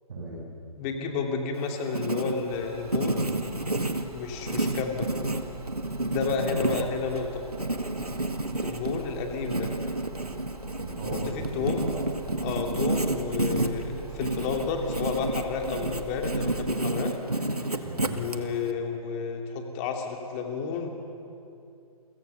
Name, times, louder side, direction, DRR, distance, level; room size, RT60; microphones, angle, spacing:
voice 1, 0.1-0.5 6.5-6.8 10.8-12.1 12.5-12.8 17.8-18.3, right 1 dB, 45° right, -5 dB, 7.7 m, -37 dB
voice 2, 0.8-3.3 4.1-5.1 6.0-7.4 8.6-9.7 11.5-11.9 12.4-17.2 17.6-17.8 18.1-20.9, left 5 dB, 20° left, 3 dB, 2.6 m, -31 dB
Writing, 1.5-18.7, right 2 dB, 85° right, 2.0 m, -31 dB
sound 1, 2.5-16.8, right 6 dB, 15° right, 2.7 m, -45 dB
30.0 x 24.0 x 6.9 m, 2.6 s
figure-of-eight pair, 135°, 19 cm